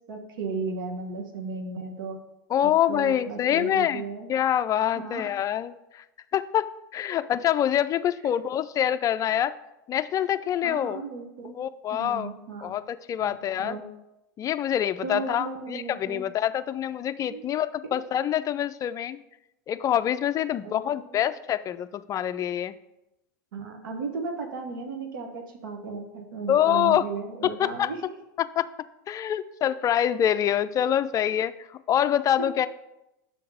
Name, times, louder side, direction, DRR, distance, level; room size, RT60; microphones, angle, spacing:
voice 1, 0.1-2.2 2.6-4.3 4.9-5.3 10.6-11.5 11.9-12.7 13.2-13.8 15.0-16.3 17.3-17.4 20.6-21.2 23.5-28.2 32.4-32.5, right 4 dB, 75° right, 4 dB, 1.2 m, -35 dB
voice 2, 2.5-6.0 6.3-6.7 6.9-9.5 9.9-11.0 11.5-12.3 12.6-13.8 14.4-19.2 19.7-22.7 26.5-27.0 27.4-27.9 28.4-28.7 29.1-32.7, left 10 dB, 30° left, 12 dB, 0.4 m, -25 dB
6.8 x 3.9 x 6.3 m, 0.90 s
hypercardioid pair, 100°, 11 cm